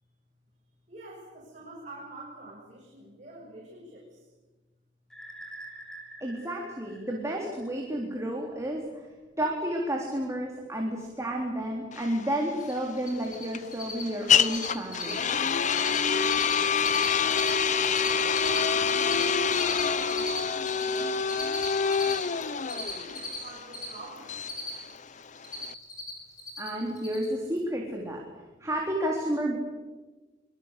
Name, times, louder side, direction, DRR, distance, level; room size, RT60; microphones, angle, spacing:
voice 1, 0.9-4.2 16.5-17.4 18.1-19.4 19.9-24.4 28.5-28.7, right 2 dB, 40° right, -4 dB, 7.0 m, -47 dB
sound 1, 5.1-7.9, right 1 dB, 5° left, 3.8 m, -46 dB
voice 2, 6.2-9.1 9.4-15.2 26.6-28.2 28.6-29.6, right 1 dB, 15° right, -1 dB, 3.7 m, -31 dB
sound 2, 11.9-25.7, left 6 dB, 40° left, 0.8 m, -27 dB
Cricket, 12.6-12.7 13.0-13.4 13.7-14.0 14.3-14.7 14.9-15.2 15.5-17.5 17.8-21.0 21.3-23.9 24.2-25.0 25.2-26.1 26.4-26.7 27.0-27.3, left 3 dB, 20° left, 7.2 m, -36 dB
25.0 x 23.0 x 8.4 m, 1.2 s
head